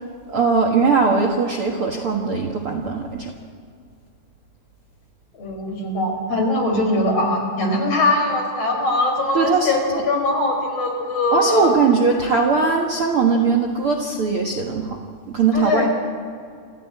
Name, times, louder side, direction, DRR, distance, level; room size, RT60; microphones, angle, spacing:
voice 1, 0.3-3.3 9.3-9.7 11.3-15.0 15.3-15.9, right 4 dB, 85° right, 1 dB, 1.2 m, -20 dB
voice 2, 5.4-11.7 15.5-15.9, left 2 dB, 35° left, 2 dB, 5.3 m, -21 dB
29.0 x 14.5 x 8.6 m, 2.2 s
omnidirectional pair, 5.1 m